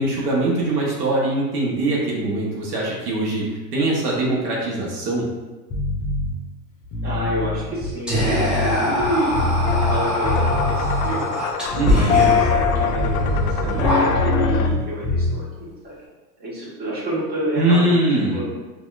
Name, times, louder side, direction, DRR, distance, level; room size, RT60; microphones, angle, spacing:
voice 1, 0.0-3.4 3.7-5.3 11.7-12.2 17.6-18.4, right 2 dB, 60° right, -4 dB, 1.1 m, -22 dB
sound 1, 5.7-6.3 6.8-10.0 10.2-11.1 11.6-14.8 15.0-15.3, left 2 dB, 30° left, 0.9 m, -24 dB
voice 2, 7.0-11.3 11.9-15.9 16.4-18.0 18.3-18.4, right 1 dB, 20° right, -7 dB, 1.3 m, -28 dB
Whispering, 8.1-14.5, equal, ahead, 0.5 m, -24 dB
sound 2, 9.6-14.7, left 6 dB, 60° left, 0.5 m, -23 dB
4.2 x 2.7 x 2.4 m, 1.2 s
hypercardioid pair, 110°, 50 cm